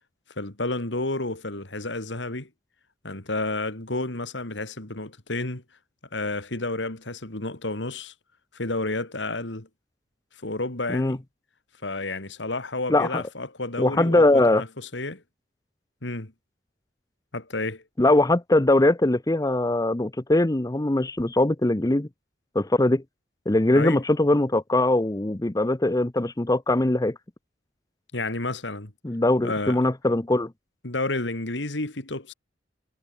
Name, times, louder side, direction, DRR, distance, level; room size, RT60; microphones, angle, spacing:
voice 1, 0.4-2.5 3.0-5.6 6.1-8.1 8.5-9.7 10.4-11.2 11.8-15.2 16.0-16.3 17.3-17.8 23.7-24.0 28.1-28.9 29.4-29.8 30.8-32.3, left 2 dB, 80° left, 2.9 m, -30 dB
voice 2, 12.9-13.2 13.8-14.6 18.0-22.1 22.5-23.0 23.5-27.1 29.0-30.5, left 2 dB, 20° left, 0.8 m, -21 dB
head